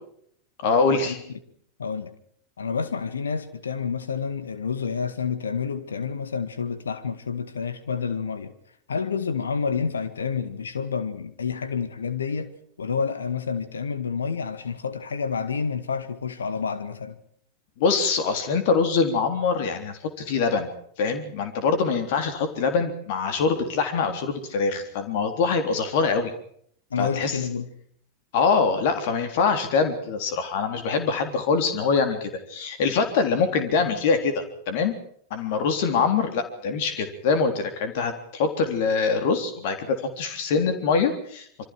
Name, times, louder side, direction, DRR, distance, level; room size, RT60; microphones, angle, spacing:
voice 1, 0.6-1.2 17.8-20.7 21.0-26.3 27.0-27.4 28.3-34.9 35.3-41.6, left 5 dB, 50° left, 3.7 m, -24 dB
voice 2, 1.8-2.1 2.6-8.5 8.9-12.5 12.8-17.2 26.9-27.7, left 6 dB, 70° left, 1.9 m, -29 dB
27.5 x 25.5 x 4.6 m
figure-of-eight pair, 90°, 0 cm